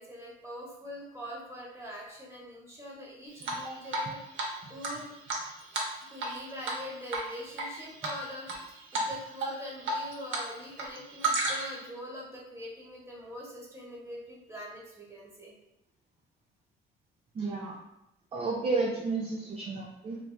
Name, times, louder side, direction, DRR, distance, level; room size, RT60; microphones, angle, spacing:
voice 1, 0.0-5.1 6.1-15.5, equal, 15° right, -4 dB, 0.9 m, -43 dB
Drip, 3.4-4.1 4.4-4.5 4.8-6.4 6.6-6.8 7.1-7.7 8.0-8.6 8.9-9.1 9.4-10.4 10.7-11.8, right 2 dB, 75° right, 0.6 m, -32 dB
voice 2, 17.3-17.8 18.3-20.2, right 3 dB, 30° right, -2 dB, 0.4 m, -32 dB
2.6 x 2.3 x 2.3 m, 0.88 s
cardioid pair, 90°, 20 cm